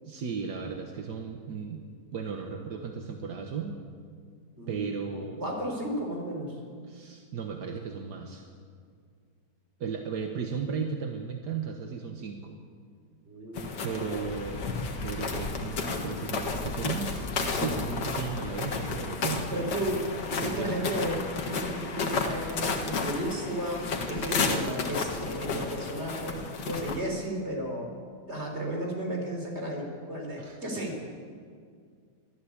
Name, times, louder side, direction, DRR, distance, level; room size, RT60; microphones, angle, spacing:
voice 1, 0.0-1.8 2.1-3.8 4.7-5.4 6.9-8.5 9.8-12.6 13.6-14.6 15.0-19.8 20.4-20.9 30.4-30.6, right 5 dB, 75° right, 4 dB, 1.9 m, -35 dB
voice 2, 4.6-6.5 13.3-13.7 19.5-21.2 21.5-27.9 28.3-31.0, right 1 dB, 40° right, 2 dB, 4.2 m, -34 dB
sound 1, 13.6-27.0, left 4 dB, 90° left, 2.2 m, -32 dB
23.5 x 14.0 x 8.7 m, 2.1 s
omnidirectional pair, 1.8 m